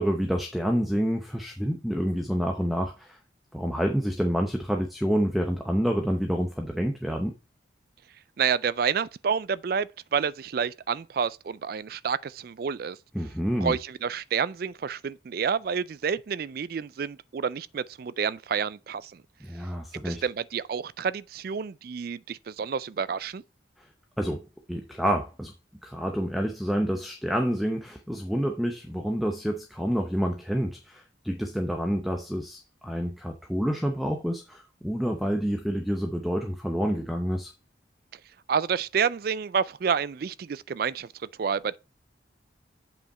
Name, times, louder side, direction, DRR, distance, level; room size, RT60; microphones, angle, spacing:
voice 1, 0.0-3.2 3.5-7.3 13.1-13.8 19.4-20.2 23.8-23.9 24.2-24.4 24.7-25.5 25.8-37.5, equal, ahead, 0.7 m, -28 dB
voice 2, 8.4-13.0 13.6-19.1 20.0-23.4 38.5-41.1 41.4-41.8, right 6 dB, 50° right, 0.3 m, -29 dB
7.9 x 5.6 x 4.2 m
head